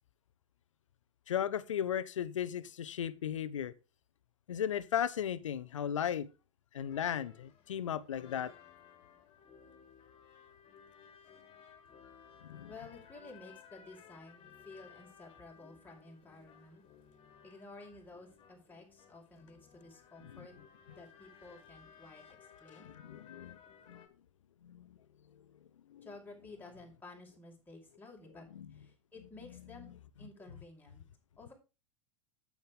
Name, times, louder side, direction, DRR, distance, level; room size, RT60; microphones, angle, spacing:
voice 1, 1.3-3.7 4.5-6.3 6.7-8.5 12.4-12.7 20.2-20.5 23.0-23.6 23.9-24.0 24.6-25.0 25.9-26.1 28.5-28.7, left 9 dB, 80° left, 0.9 m, -36 dB
sound 1, 6.8-24.1, left 7 dB, 35° left, 3.1 m, -58 dB
voice 2, 12.7-16.8 17.4-20.5 20.9-22.2 22.6-22.9 26.0-29.9 30.2-31.0 31.4-31.5, left 3 dB, 10° left, 5.0 m, -53 dB
9.4 x 8.9 x 3.5 m
hypercardioid pair, 95°, 16 cm